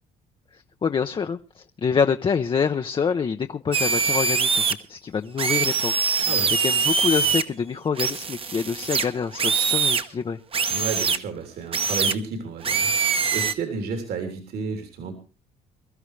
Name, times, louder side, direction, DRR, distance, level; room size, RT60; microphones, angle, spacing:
voice 1, 0.5-5.9 6.6-10.4, left 6 dB, 30° left, 0.7 m, -26 dB
sound 1, 3.7-4.7 5.4-7.4 8.0-10.0 10.5-11.2 11.7-12.1 12.6-13.5, right 5 dB, 35° right, 1.1 m, -23 dB
voice 2, 6.2-6.5 10.7-15.1, right 4 dB, 70° right, 3.3 m, -32 dB
23.0 x 13.0 x 3.3 m
cardioid pair, 110°, 17 cm